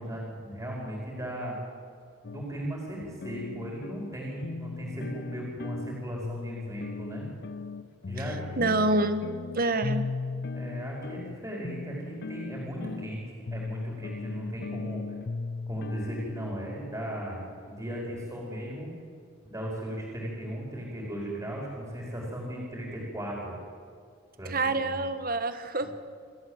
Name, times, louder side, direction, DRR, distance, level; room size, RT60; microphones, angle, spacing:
voice 1, 0.0-1.6 2.3-7.2 8.1-8.7 10.5-15.0 15.7-17.4 17.7-18.9 19.4-23.5 24.4-25.0, equal, 15° right, -3 dB, 4.8 m, -37 dB
sound 1, 2.2-18.5, left 3 dB, 50° left, 0.5 m, -38 dB
voice 2, 8.6-9.2 9.5-10.1 24.4-25.9, right 2 dB, 45° right, 10 dB, 1.4 m, -27 dB
28.0 x 13.0 x 8.1 m, 2.2 s
head